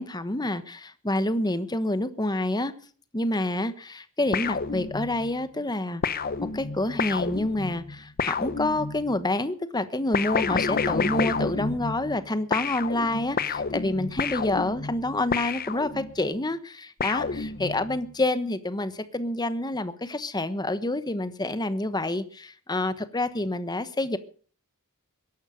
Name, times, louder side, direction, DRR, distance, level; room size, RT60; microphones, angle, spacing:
voice 1, 0.0-2.7 3.1-6.0 6.5-24.2, left 2 dB, 20° left, 12 dB, 1.1 m, -28 dB
sound 1, 4.3-5.3 6.0-9.2 10.1-12.2 12.5-16.3 17.0-18.0, left 5 dB, 40° left, 0.8 m, -29 dB
21.5 x 11.5 x 5.1 m, 0.43 s
head